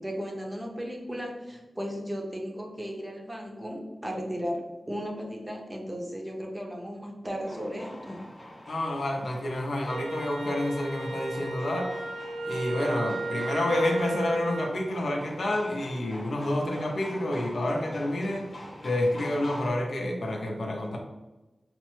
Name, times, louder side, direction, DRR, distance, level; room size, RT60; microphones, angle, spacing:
voice 1, 0.0-8.2, equal, 20° right, 0 dB, 0.6 m, -35 dB
sound 1, 7.4-19.7, left 1 dB, 40° left, 0.8 m, -44 dB
voice 2, 8.7-11.9 12.4-18.5 18.8-21.0, left 1 dB, 75° left, 1 dB, 0.6 m, -29 dB
Wind instrument woodwind instrument, 9.9-14.8, right 2 dB, 75° right, 0.4 m, -34 dB
3.2 x 2.0 x 3.0 m, 1.1 s
wide cardioid pair, 105°, 0 cm